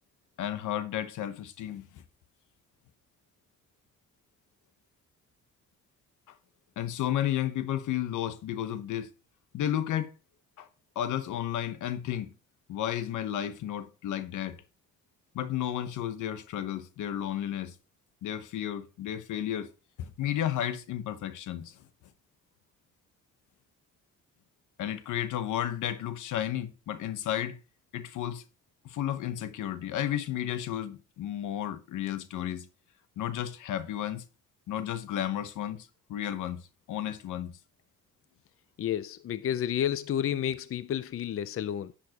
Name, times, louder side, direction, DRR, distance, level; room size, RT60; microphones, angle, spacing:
voice 1, 0.4-2.0 6.8-9.1 9.5-10.1 10.6-10.7 10.9-12.3 12.7-14.6 15.3-17.7 18.2-19.7 20.0-21.8 24.8-27.6 27.9-28.4 28.8-32.7 33.2-34.2 34.7-36.6 36.9-37.6, left 11 dB, 80° left, 1.0 m, -32 dB
voice 2, 38.8-42.0, left 10 dB, 50° left, 0.5 m, -31 dB
10.5 x 7.4 x 2.9 m
cardioid pair, 90°, 30 cm